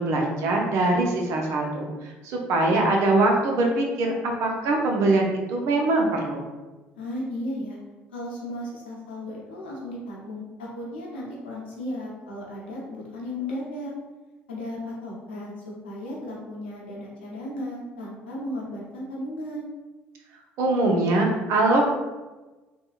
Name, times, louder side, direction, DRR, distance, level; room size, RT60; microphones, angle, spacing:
voice 1, 0.0-1.9 2.2-4.1 4.4-6.5 20.6-21.9, right 2 dB, 65° right, 1 dB, 0.6 m, -22 dB
voice 2, 7.0-7.8 8.1-13.9 14.5-19.7, left 1 dB, 85° left, -4 dB, 0.8 m, -35 dB
3.5 x 2.1 x 2.4 m, 1.2 s
hypercardioid pair, 60°, 6 cm